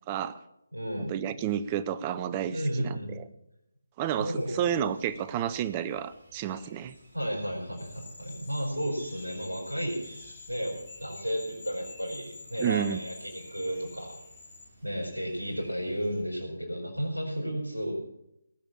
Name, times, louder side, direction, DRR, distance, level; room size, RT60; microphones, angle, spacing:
voice 1, 0.1-0.4 1.1-3.2 4.0-6.9 12.6-13.0, right 10 dB, 20° right, 15 dB, 0.5 m, -31 dB
voice 2, 0.7-1.2 2.5-3.1 4.2-4.8 7.1-10.2 10.5-14.2 14.8-18.0, equal, 80° right, -4 dB, 5.0 m, -33 dB
sound 1, 4.3-16.2, right 1 dB, 50° right, 4.9 m, -55 dB
sound 2, 7.7-14.6, left 4 dB, 45° left, 4.5 m, -49 dB
19.5 x 6.9 x 7.4 m, 0.85 s
figure-of-eight pair, 150°, 0 cm